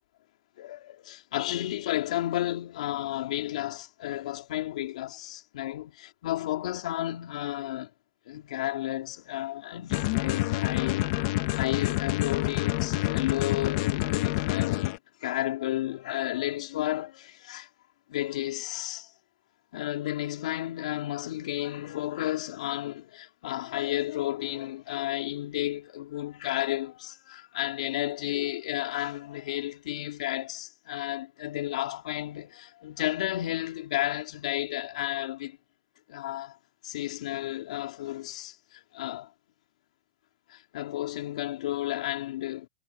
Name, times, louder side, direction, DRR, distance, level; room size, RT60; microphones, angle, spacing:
voice 1, 0.6-7.9 8.3-11.1 11.5-14.9 15.2-17.7 18.1-19.1 19.7-35.6 36.1-36.6 36.8-39.3 40.5-42.7, left 14 dB, 80° left, 3.4 m, -32 dB
sound 1, 9.9-15.0, left 19 dB, 55° left, 1.9 m, -27 dB
supercardioid pair, 135°, 4 cm